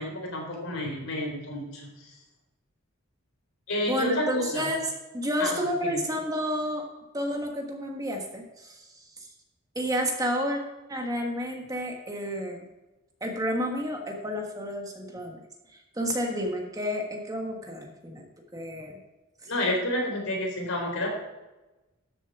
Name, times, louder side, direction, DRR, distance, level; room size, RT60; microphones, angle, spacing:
voice 1, 0.0-1.9 3.7-4.7 5.4-5.6 5.8-6.0 19.5-21.1, left 1 dB, 80° left, 0 dB, 4.1 m, -30 dB
voice 2, 3.9-6.9 7.1-8.8 9.7-10.6 10.9-12.6 13.2-15.4 15.7-18.3 18.5-19.0, equal, 15° right, 2 dB, 1.4 m, -30 dB
13.0 x 7.1 x 4.7 m, 1.1 s
head